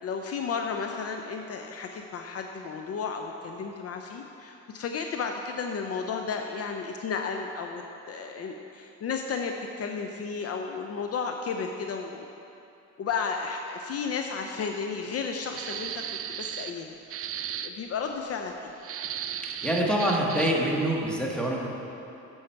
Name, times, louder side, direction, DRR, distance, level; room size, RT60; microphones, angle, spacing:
voice 1, 0.0-12.3 13.0-16.0 16.3-17.0 17.6-18.7, left 5 dB, 55° left, 4 dB, 0.6 m, -33 dB
sound 1, 15.5-16.8 17.1-17.7 18.8-20.7, right 9 dB, 50° right, 0.4 m, -35 dB
voice 2, 19.6-21.7, right 1 dB, 5° left, -3 dB, 1.5 m, -25 dB
8.6 x 7.0 x 4.5 m, 2.8 s
cardioid pair, 90°, 30 cm